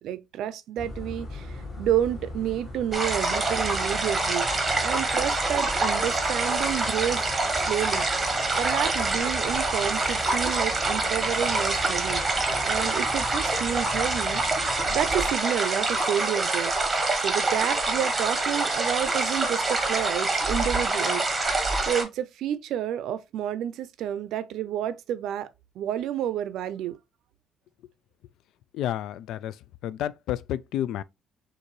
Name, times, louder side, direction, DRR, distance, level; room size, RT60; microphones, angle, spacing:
voice 1, 0.0-4.5 4.8-7.3 7.6-8.1 8.6-12.2 12.6-16.7 17.2-21.3 21.8-25.5 25.8-27.0, right 10 dB, 65° right, 0.5 m, -30 dB
sound 1, 0.8-15.3, left 2 dB, 30° left, 1.6 m, -40 dB
sound 2, 2.9-22.0, right 2 dB, 15° right, 1.0 m, -26 dB
voice 2, 28.7-29.5 29.8-31.0, left 11 dB, 70° left, 0.3 m, -30 dB
6.5 x 2.6 x 3.0 m
cardioid pair, 170°, 0 cm